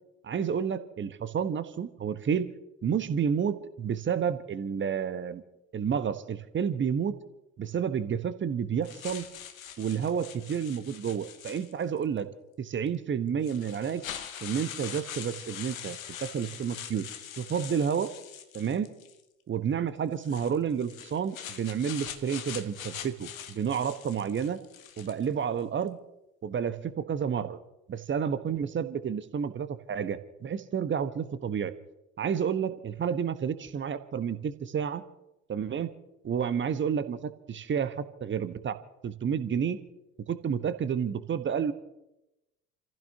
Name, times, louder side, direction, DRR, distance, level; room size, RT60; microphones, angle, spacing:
voice 1, 0.2-2.5 2.8-5.4 5.7-7.1 7.6-9.2 9.8-12.3 12.6-14.0 14.4-17.1 17.4-18.1 18.5-18.9 19.5-24.6 25.0-26.0 26.4-27.6 27.9-31.7 32.2-35.0 35.5-35.9 36.2-38.8 39.0-39.8 40.3-41.7, right 7 dB, 25° right, 11 dB, 1.2 m, -30 dB
sound 1, 8.8-12.0 12.9-13.0 13.4-19.2 20.1-25.3, left 9 dB, 75° left, 1.0 m, -43 dB
30.0 x 15.0 x 2.8 m, 0.91 s
figure-of-eight pair, 55°, 42 cm